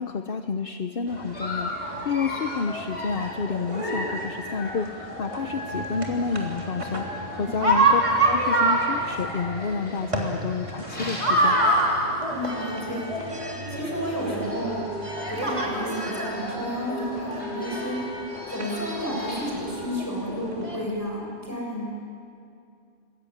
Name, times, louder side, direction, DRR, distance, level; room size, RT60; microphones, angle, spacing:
voice 1, 0.0-8.0 8.3-11.6, left 5 dB, 60° left, 8 dB, 1.0 m, -30 dB
sound 1, 1.1-20.9, right 1 dB, 30° right, 3.4 m, -28 dB
Dog, 1.3-7.9 8.7-12.3 12.7-12.9 13.2-13.3 14.1-14.2 14.4-15.0 15.6-19.7, left 1 dB, 90° left, 5.7 m, -38 dB
voice 2, 7.3-7.8 12.3-13.1 13.7-14.8 15.3-18.0 18.5-22.0, equal, 15° left, -1 dB, 6.7 m, -31 dB
sound 2, 14.2-21.1, left 1 dB, 60° right, 6.3 m, -40 dB
25.0 x 21.5 x 9.9 m, 2.4 s
omnidirectional pair, 1.1 m